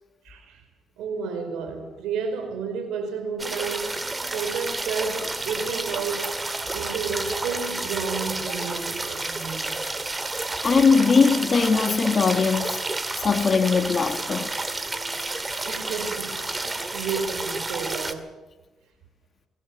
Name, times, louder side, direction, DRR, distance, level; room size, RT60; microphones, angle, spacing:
voice 1, 0.2-0.6 1.0-9.8 15.7-18.4, right 5 dB, 90° right, 4.6 m, -32 dB
sound 1, 3.4-18.1, right 2 dB, 20° right, 2.3 m, -30 dB
voice 2, 10.6-12.8 13.2-14.5, left 5 dB, 40° left, 2.0 m, -20 dB
23.5 x 17.0 x 7.6 m
cardioid pair, 90°, 0 cm